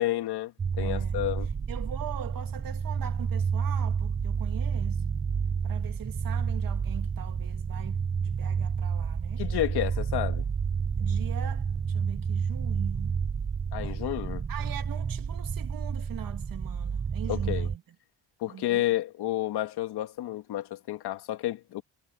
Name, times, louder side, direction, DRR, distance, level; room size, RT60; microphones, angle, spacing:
voice 1, 0.0-1.5 9.4-10.4 13.7-14.4 17.3-17.7 18.4-21.8, left 14 dB, 75° left, 1.8 m, -30 dB
sound 1, 0.6-17.8, right 6 dB, 20° right, 0.3 m, -30 dB
voice 2, 0.8-1.3 1.7-5.0 5.6-9.5 11.0-13.2 14.5-18.0 18.5-18.8, right 10 dB, 55° right, 2.2 m, -42 dB
cardioid pair, 110°, 39 cm